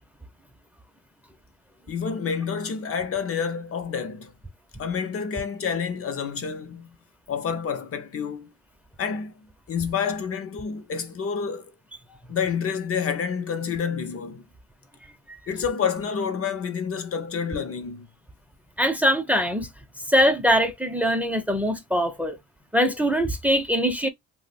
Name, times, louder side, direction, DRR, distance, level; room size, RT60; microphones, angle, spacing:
voice 1, 1.9-4.3 4.8-6.9 7.3-8.5 9.0-9.3 9.7-11.7 12.3-14.4 15.5-18.1, left 6 dB, 50° left, 0.7 m, -28 dB
voice 2, 18.8-19.7 20.1-22.4 22.7-24.1, equal, 5° right, 0.7 m, -22 dB
2.6 x 2.2 x 4.0 m
cardioid pair, 95°, 29 cm